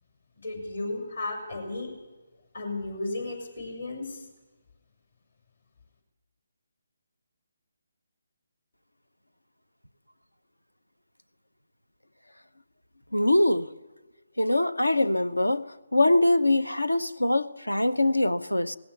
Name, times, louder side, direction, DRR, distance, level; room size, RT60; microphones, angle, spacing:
voice 1, 0.4-1.9 2.5-4.2, left 2 dB, 60° left, 6.4 m, -34 dB
voice 2, 13.1-13.7 14.4-15.6 15.9-18.8, left 1 dB, 80° left, 0.9 m, -23 dB
19.0 x 16.0 x 9.9 m
figure-of-eight pair, 145°, 0 cm